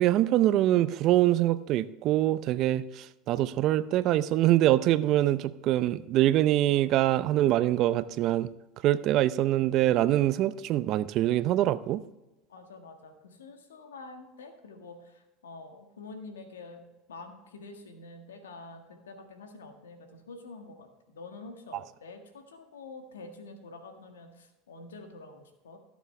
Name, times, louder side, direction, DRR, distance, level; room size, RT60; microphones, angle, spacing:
voice 1, 0.0-8.5 8.8-12.0 21.7-21.8, right 14 dB, 55° right, 15 dB, 0.6 m, -24 dB
voice 2, 12.5-16.8 17.1-25.8, left 3 dB, 90° left, 5 dB, 1.7 m, -47 dB
17.5 x 7.2 x 3.3 m, 1.0 s
hypercardioid pair, 85°, 0 cm